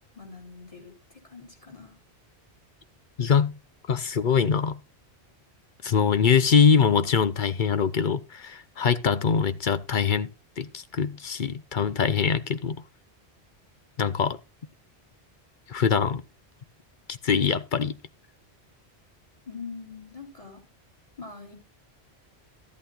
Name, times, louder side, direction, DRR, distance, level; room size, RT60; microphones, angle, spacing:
voice 1, 0.1-2.0 19.5-20.6 21.2-21.5, left 4 dB, 30° left, 3.6 m, -43 dB
voice 2, 3.2-3.6 3.9-4.8 5.8-10.3 10.6-12.8 14.0-14.4 15.7-16.2 17.1-17.9, left 6 dB, 55° left, 0.8 m, -23 dB
13.5 x 8.5 x 3.8 m
omnidirectional pair, 1.1 m